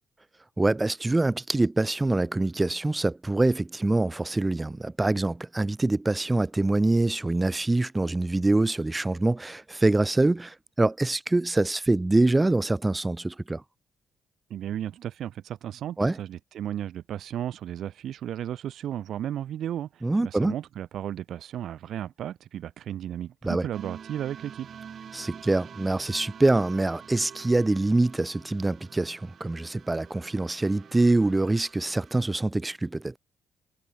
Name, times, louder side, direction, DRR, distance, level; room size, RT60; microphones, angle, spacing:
voice 1, 0.6-13.6 16.0-16.2 20.0-20.5 23.4-23.6 25.1-33.1, right 2 dB, 15° right, 1.7 m, -25 dB
voice 2, 14.5-24.7, right 10 dB, 70° right, 1.0 m, -34 dB
sound 1, 23.7-32.4, right 7 dB, 55° right, 3.0 m, -47 dB
cardioid pair, 90°, 0 cm